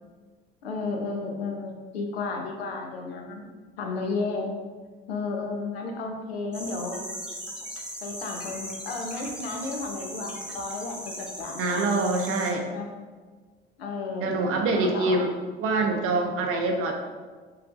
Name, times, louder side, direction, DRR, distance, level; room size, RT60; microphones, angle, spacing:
voice 1, 0.6-3.5 3.8-4.5 5.1-7.0 8.0-11.9 12.7-12.9 13.8-15.2, left 3 dB, 75° left, 2 dB, 0.7 m, -33 dB
sound 1, 6.5-12.5, equal, 5° right, 1.0 m, -38 dB
voice 2, 11.6-12.7 14.2-15.3 15.6-16.9, right 3 dB, 45° right, 3 dB, 0.6 m, -25 dB
5.7 x 3.3 x 2.5 m, 1.4 s
figure-of-eight pair, 55°, 31 cm